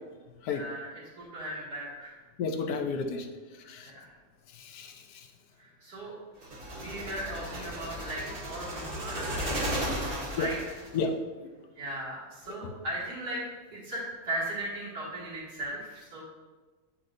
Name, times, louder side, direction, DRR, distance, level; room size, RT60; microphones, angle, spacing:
voice 1, 0.5-2.2 3.8-4.1 5.6-6.1 6.7-10.6 11.8-13.4 13.7-16.2, right 1 dB, 85° right, -7 dB, 2.9 m, -37 dB
voice 2, 2.4-3.3 3.6-3.9 4.5-5.3 10.4-10.5 10.9-11.1 12.6-12.7, left 5 dB, 80° left, 6 dB, 1.2 m, -32 dB
sound 1, 6.4-11.0, equal, 40° right, 1.3 m, -35 dB
8.2 x 7.6 x 2.6 m, 1.3 s
omnidirectional pair, 1.6 m